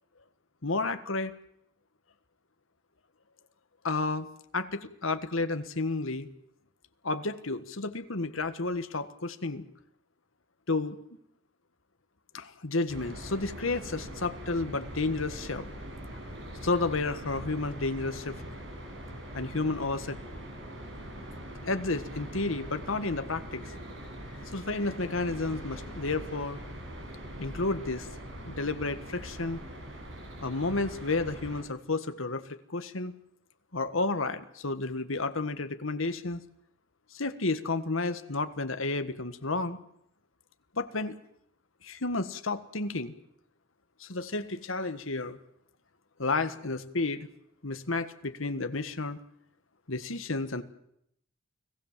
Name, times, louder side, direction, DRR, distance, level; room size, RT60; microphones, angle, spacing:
voice 1, 0.6-1.3 3.8-4.3 4.5-6.3 7.0-9.6 10.7-11.0 12.3-15.6 16.6-18.4 19.3-20.2 21.6-23.8 24.5-26.6 27.4-28.1 28.5-29.6 30.4-33.1 33.7-36.4 37.1-39.8 40.8-41.1 41.8-43.1 44.0-45.4 46.2-47.3 47.6-49.2 49.9-50.6, left 3 dB, 75° left, 10 dB, 1.6 m, -31 dB
sound 1, 12.9-31.6, equal, 65° right, 6.5 m, -42 dB
29.5 x 18.5 x 7.5 m, 0.75 s
head